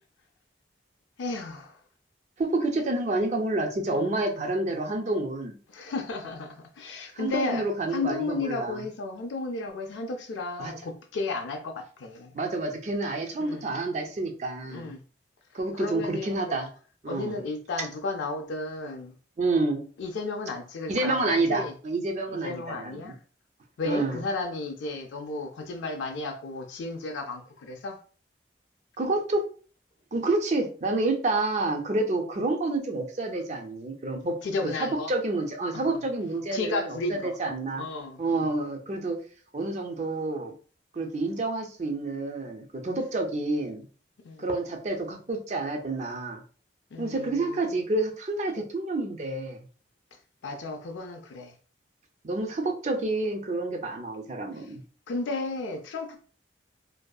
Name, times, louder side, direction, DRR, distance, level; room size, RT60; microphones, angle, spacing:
voice 1, 1.2-1.8 3.9-4.2 5.7-7.6 7.9-12.3 13.4-13.6 14.7-15.0 15.7-16.6 17.1-19.1 20.0-21.7 22.3-23.2 23.8-28.0 34.4-35.1 35.7-36.0 36.5-37.4 37.8-38.5 44.2-44.5 46.9-47.6 50.1-51.5 54.5-54.7 55.1-56.2, left 3 dB, 80° left, 0.4 m, -33 dB
voice 2, 2.4-5.6 7.1-8.8 10.6-10.7 12.3-14.9 15.5-16.7 17.0-17.4 19.4-19.8 20.9-23.1 23.9-24.2 29.0-29.4 30.1-34.4 34.8-37.8 38.2-39.2 39.5-40.5 40.9-43.9 44.4-46.4 47.0-49.6 52.2-54.8, right 2 dB, 40° right, 0.4 m, -29 dB
2.6 x 2.2 x 2.3 m
head